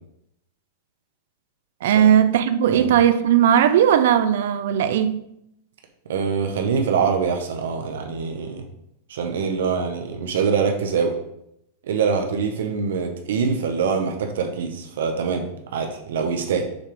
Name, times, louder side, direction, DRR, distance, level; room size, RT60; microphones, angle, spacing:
voice 1, 1.8-5.2, right 9 dB, 60° right, 0.5 m, -17 dB
voice 2, 6.1-8.6 9.1-11.2 11.8-16.6, right 5 dB, 85° right, 1.0 m, -24 dB
6.4 x 3.5 x 4.9 m
supercardioid pair, 175°, 0 cm